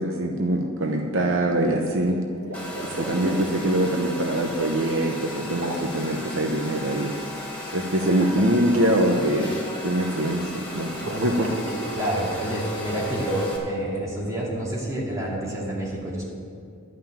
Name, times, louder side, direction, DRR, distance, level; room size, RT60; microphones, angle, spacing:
voice 1, 0.0-2.2 2.8-7.1 7.7-11.6, right 1 dB, 65° right, 2 dB, 0.9 m, -24 dB
sound 1, 2.3-3.5 5.5-6.0 7.9-9.0 10.9-12.6, right 1 dB, 80° right, 2.0 m, -35 dB
Domestic sounds home sounds, 2.5-13.6, equal, 5° left, 2.0 m, -36 dB
voice 2, 11.9-16.2, right 1 dB, 15° right, -5 dB, 2.6 m, -28 dB
12.5 x 5.7 x 9.0 m, 2.3 s
head